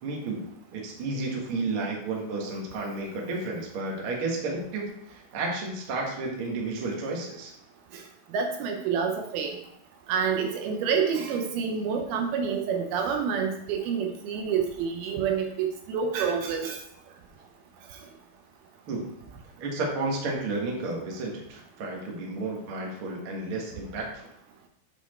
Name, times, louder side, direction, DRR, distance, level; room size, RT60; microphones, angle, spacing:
voice 1, 0.0-7.5 18.9-19.1 19.6-24.3, right 2 dB, 60° right, -1 dB, 1.4 m, -32 dB
voice 2, 8.3-9.6 10.1-16.8, right 6 dB, 75° right, 3 dB, 2.5 m, -28 dB
8.2 x 4.1 x 4.3 m, 0.73 s
omnidirectional pair, 4.7 m